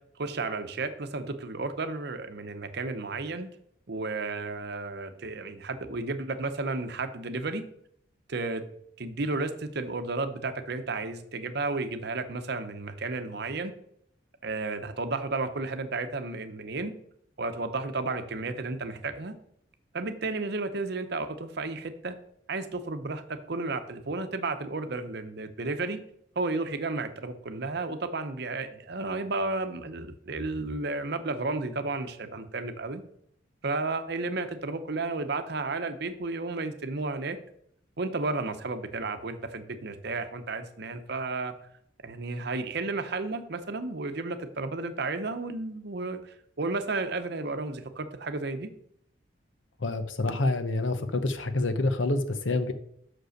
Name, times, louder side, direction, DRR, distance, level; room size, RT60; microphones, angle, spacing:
voice 1, 0.2-3.5 3.9-7.6 8.3-8.6 9.0-13.7 14.4-16.9 17.4-19.3 19.9-22.2 22.5-26.0 26.4-33.0 33.6-37.4 38.0-41.5 42.0-48.7, right 3 dB, 60° right, 9 dB, 0.8 m, -32 dB
voice 2, 49.8-52.7, left 2 dB, 85° left, 10 dB, 0.8 m, -27 dB
6.2 x 5.2 x 6.4 m, 0.69 s
head